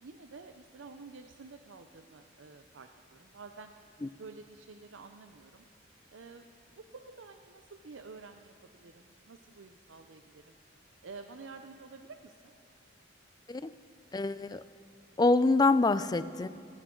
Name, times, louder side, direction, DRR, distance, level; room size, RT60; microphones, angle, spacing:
voice 1, 0.0-3.7 4.2-5.6 6.1-10.6 11.0-12.5, right 4 dB, 80° right, 7 dB, 0.6 m, -50 dB
voice 2, 14.1-14.6 15.2-16.5, left 3 dB, 20° left, 14 dB, 0.3 m, -25 dB
18.0 x 17.5 x 3.8 m, 2.5 s
head